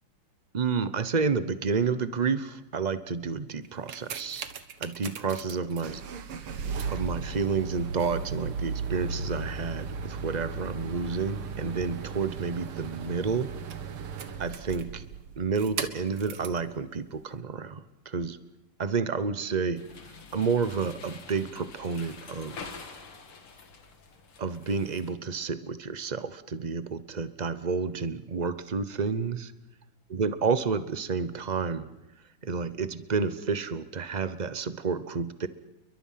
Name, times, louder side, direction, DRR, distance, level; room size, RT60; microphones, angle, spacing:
voice 1, 0.5-4.5 4.8-6.0 6.9-13.5 14.4-15.0 15.4-18.4 18.8-19.9 20.3-22.8 24.4-29.5 30.1-31.9 32.4-35.5, right 5 dB, 50° right, 13 dB, 0.5 m, -30 dB
sound 1, 3.6-16.6 17.4-17.5, right 5 dB, 80° right, 2.4 m, -36 dB
sound 2, 19.8-25.1, left 4 dB, 90° left, 3.2 m, -46 dB
29.5 x 23.0 x 5.8 m, 1.0 s
omnidirectional pair, 2.3 m